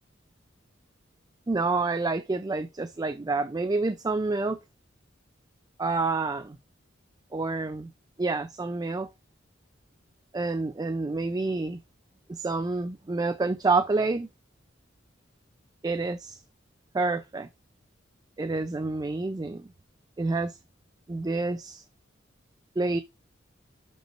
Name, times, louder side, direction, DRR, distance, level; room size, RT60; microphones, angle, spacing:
voice 1, 1.5-4.6 5.8-6.6 7.3-7.9 8.2-9.1 10.3-11.8 12.3-14.3 15.8-16.4 16.9-17.5 18.4-19.6 20.2-20.6 21.1-21.8 22.8-23.0, right 3 dB, 20° right, 0.4 m, -28 dB
6.4 x 5.2 x 2.9 m
head